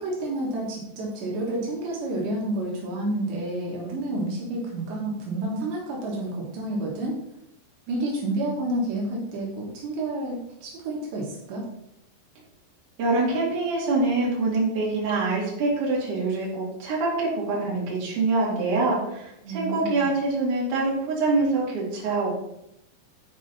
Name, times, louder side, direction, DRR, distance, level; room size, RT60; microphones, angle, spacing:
voice 1, 0.0-7.2 7.9-11.6 19.4-20.1, right 1 dB, 75° right, -3 dB, 3.6 m, -30 dB
voice 2, 13.0-22.3, right 3 dB, 50° right, -4 dB, 3.3 m, -25 dB
8.5 x 5.5 x 4.1 m, 0.81 s
omnidirectional pair, 5.1 m